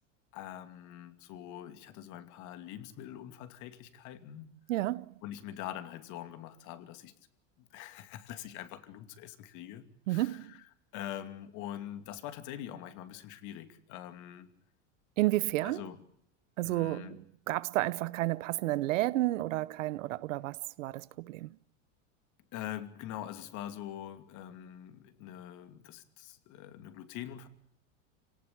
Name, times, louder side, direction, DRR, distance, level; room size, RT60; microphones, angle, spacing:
voice 1, 0.3-4.5 5.2-7.1 7.6-10.6 10.9-14.5 15.6-16.0 16.6-17.2 22.5-27.5, left 11 dB, 50° left, 2.7 m, -44 dB
voice 2, 4.7-5.1 10.1-10.5 15.2-15.8 16.6-21.6, right 17 dB, 80° right, 0.8 m, -31 dB
25.5 x 18.0 x 8.6 m
supercardioid pair, 125°, 38 cm